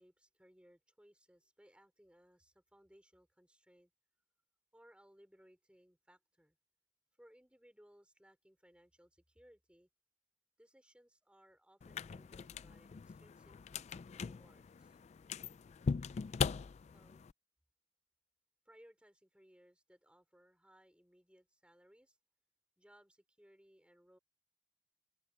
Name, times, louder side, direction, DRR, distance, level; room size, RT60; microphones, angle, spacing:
voice 1, 0.0-3.9 4.7-6.6 7.2-9.9 10.6-13.6 14.1-15.0 16.9-17.3 18.6-22.2 22.8-24.2, equal, 5° right, 5.1 m, -65 dB
sound 1, 11.8-17.3, left 5 dB, 40° left, 0.3 m, -40 dB
open air
head